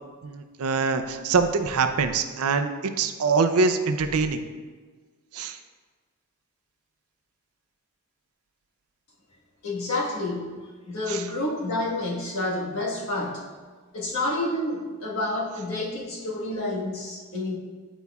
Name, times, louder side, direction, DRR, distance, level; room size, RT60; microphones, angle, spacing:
voice 1, 0.2-4.4 5.3-5.6 11.1-11.2, right 4 dB, 80° right, 8 dB, 0.5 m, -24 dB
voice 2, 9.6-13.4 13.9-17.5, left 2 dB, 75° left, -4 dB, 1.4 m, -29 dB
10.0 x 4.0 x 2.3 m, 1.4 s
head